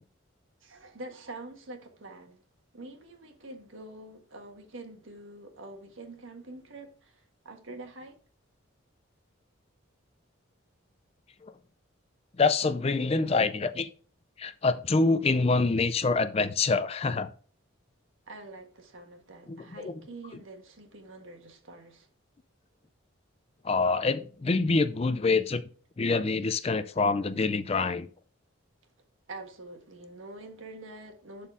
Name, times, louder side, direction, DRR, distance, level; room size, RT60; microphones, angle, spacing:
voice 1, 0.6-2.4 2.7-8.2 18.3-22.1 29.3-31.5, right 2 dB, 70° right, 1.5 m, -46 dB
voice 2, 12.4-13.9 14.4-17.3 19.5-19.6 19.8-19.9 23.6-25.6 26.0-28.1, left 3 dB, 30° left, 0.4 m, -26 dB
11.0 x 4.2 x 3.7 m
head